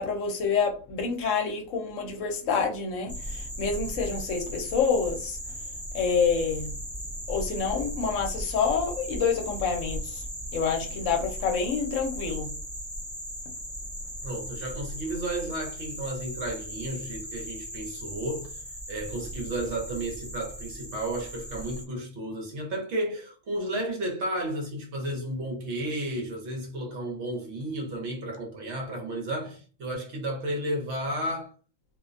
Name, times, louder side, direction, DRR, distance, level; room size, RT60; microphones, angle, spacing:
voice 1, 0.0-5.4 5.9-6.7 7.3-10.2 10.5-12.5, left 5 dB, 70° left, 0.9 m, -27 dB
sound 1, 3.1-21.8, equal, ahead, 0.7 m, -37 dB
voice 2, 14.2-18.6 18.9-31.5, right 1 dB, 60° right, 0.9 m, -33 dB
2.4 x 2.1 x 2.4 m
omnidirectional pair, 1.4 m